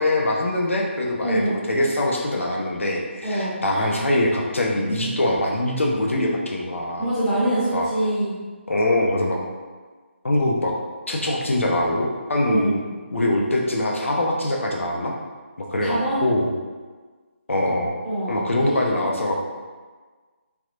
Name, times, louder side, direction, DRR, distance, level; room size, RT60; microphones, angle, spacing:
voice 1, 0.0-7.1 7.7-7.9 8.7-9.4 10.2-10.7 11.1-12.8 13.1-15.1 15.6-16.5 17.5-17.9 18.3-19.4, left 1 dB, 80° left, -1 dB, 0.6 m, -23 dB
voice 2, 1.2-1.6 3.2-3.9 7.0-8.4 12.4-12.8 15.8-16.2 18.0-19.0, right 1 dB, 5° right, -16 dB, 1.2 m, -25 dB
3.3 x 2.8 x 2.4 m, 1.4 s
figure-of-eight pair, 150°, 7 cm